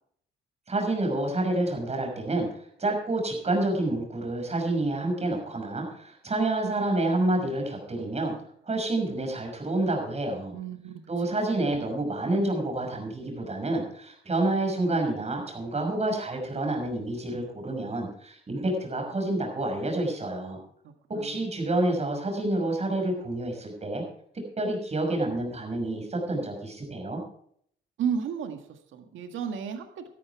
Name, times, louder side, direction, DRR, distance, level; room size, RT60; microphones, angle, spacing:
voice 1, 0.7-2.5 2.8-8.4 8.6-10.5 11.1-20.6 21.1-24.0 24.6-27.2, right 2 dB, 35° right, 2 dB, 5.9 m, -28 dB
voice 2, 10.5-11.7 20.5-21.4 28.0-30.1, right 7 dB, 80° right, 6 dB, 1.7 m, -34 dB
13.0 x 12.0 x 4.7 m, 0.65 s
cardioid pair, 90°, 20 cm